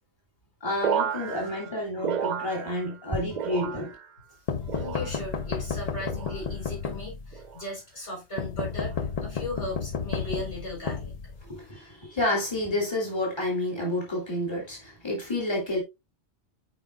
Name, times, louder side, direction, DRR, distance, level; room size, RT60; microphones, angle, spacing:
voice 1, 0.6-3.9 11.4-15.8, left 1 dB, 25° left, 2.9 m, -29 dB
sound 1, 0.8-3.1 3.3-4.2 4.7-5.4 6.0-6.5 7.3-7.7 8.6-8.9, right 8 dB, 50° right, 0.6 m, -32 dB
sound 2, 4.5-7.4 8.4-11.7, left 6 dB, 45° left, 0.5 m, -32 dB
voice 2, 4.7-8.9 9.2-11.1 11.7-12.0, left 1 dB, 75° left, 4.4 m, -37 dB
8.4 x 5.3 x 2.3 m
omnidirectional pair, 1.1 m